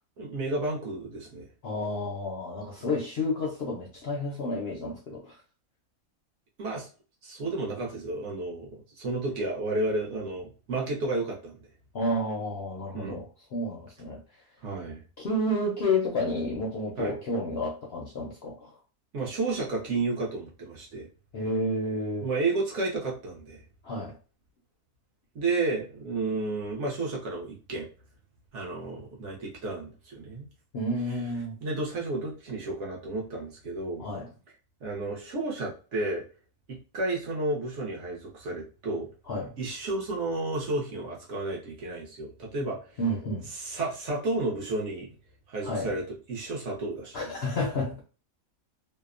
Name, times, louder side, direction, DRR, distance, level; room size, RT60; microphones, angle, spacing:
voice 1, 0.2-1.5 6.6-6.9 7.2-8.7 9.0-11.6 12.9-13.2 14.6-15.0 17.0-17.2 19.1-21.1 22.2-23.6 25.3-27.9 28.5-30.5 31.6-34.1 34.8-36.2 36.9-39.1 39.6-43.0 43.5-45.1 45.5-47.3, right 2 dB, 60° right, 0.9 m, -32 dB
voice 2, 1.6-5.4 11.9-14.2 15.2-18.7 21.3-22.3 23.8-24.1 30.7-31.6 34.0-34.3 39.3-39.5 42.6-42.7 43.0-43.5 45.6-45.9 47.1-48.1, left 1 dB, 65° left, 0.6 m, -30 dB
2.7 x 2.0 x 2.4 m
omnidirectional pair, 1.6 m